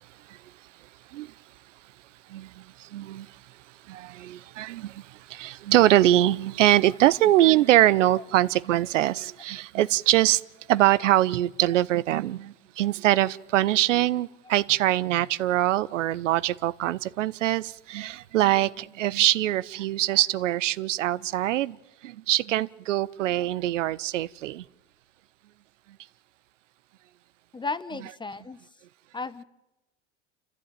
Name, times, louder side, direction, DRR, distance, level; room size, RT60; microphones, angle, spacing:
voice 1, 2.3-3.4 3.9-10.4 10.7-21.8 22.0-24.6, right 14 dB, 90° right, 0.7 m, -23 dB
voice 2, 27.5-28.6 29.1-29.4, left 3 dB, 15° left, 0.9 m, -34 dB
27.0 x 14.5 x 8.9 m
hypercardioid pair, 95°, 36 cm